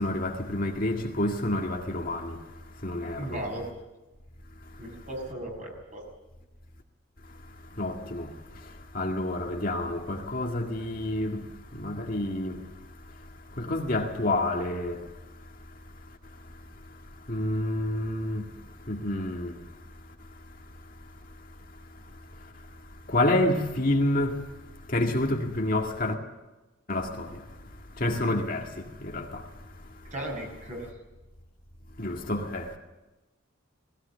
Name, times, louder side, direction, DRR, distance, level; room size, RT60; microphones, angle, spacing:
voice 1, 0.0-2.4 2.8-3.4 7.8-8.3 8.9-11.4 11.7-12.6 13.6-15.1 17.3-18.5 18.9-19.6 23.1-24.4 24.9-26.2 26.9-27.4 28.0-28.7 29.0-29.4 32.0-32.8, left 1 dB, 40° left, 2.0 m, -28 dB
voice 2, 3.2-3.6 4.8-6.0 30.1-30.9, right 1 dB, 35° right, 6.1 m, -36 dB
19.0 x 17.0 x 8.4 m
head